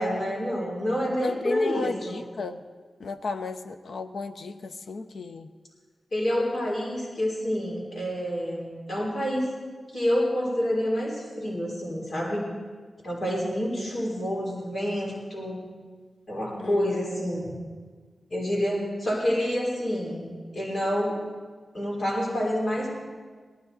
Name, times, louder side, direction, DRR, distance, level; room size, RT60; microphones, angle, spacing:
voice 1, 0.0-2.2 6.1-9.6 9.9-12.5 13.0-15.7 16.3-17.5 18.3-21.2 21.7-22.9, equal, 55° left, -2 dB, 3.6 m, -28 dB
voice 2, 1.2-2.6 3.0-5.5 16.6-17.0, left 4 dB, 85° left, 8 dB, 0.8 m, -34 dB
18.5 x 13.0 x 4.1 m, 1.5 s
wide cardioid pair, 150°, 0 cm